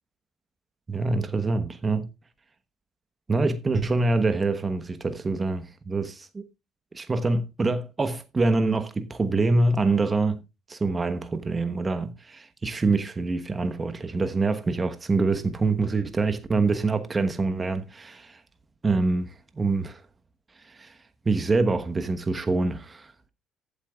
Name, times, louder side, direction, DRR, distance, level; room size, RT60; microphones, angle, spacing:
voice 1, 0.9-2.1 3.3-6.4 6.9-10.4 10.7-18.4 18.8-20.0 20.6-20.9 21.2-23.1, right 3 dB, 25° right, 1.1 m, -25 dB
14.0 x 8.7 x 2.4 m
supercardioid pair, 85°, 0 cm